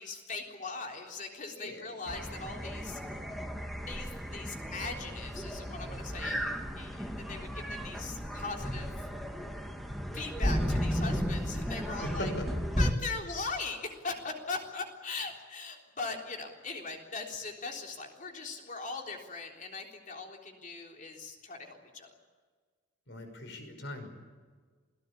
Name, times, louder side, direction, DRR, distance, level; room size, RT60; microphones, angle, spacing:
voice 1, 0.0-3.2 3.9-6.5 6.8-8.9 10.1-12.3 12.8-22.1, left 4 dB, 40° left, 2 dB, 3.7 m, -40 dB
voice 2, 1.6-2.0 11.9-12.5 23.1-24.1, left 1 dB, 60° left, 6 dB, 5.8 m, -39 dB
sound 1, 2.1-12.9, equal, ahead, 2.2 m, -34 dB
28.0 x 18.5 x 8.5 m, 1.5 s
head